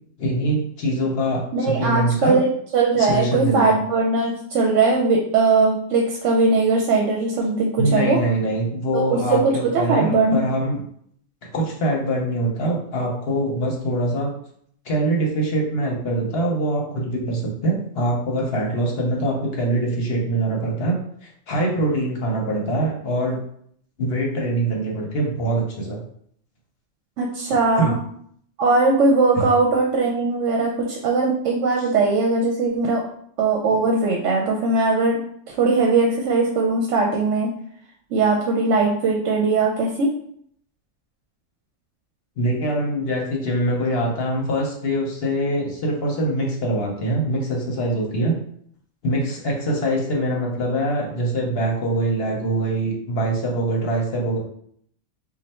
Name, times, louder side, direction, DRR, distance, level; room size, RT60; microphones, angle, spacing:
voice 1, 0.2-2.4 3.0-3.8 7.8-10.8 11.4-14.3 14.8-23.4 24.0-26.0 27.7-28.0 29.4-29.5 31.8-31.9 42.4-48.3 49.0-54.4, right 1 dB, 55° left, -1 dB, 1.0 m, -23 dB
voice 2, 1.5-8.2 8.9-10.4 27.2-28.0 28.6-33.0 33.4-35.2 35.5-37.5 38.1-40.1, right 3 dB, 80° right, 0 dB, 0.9 m, -20 dB
3.2 x 2.3 x 4.2 m, 0.66 s
omnidirectional pair, 1.3 m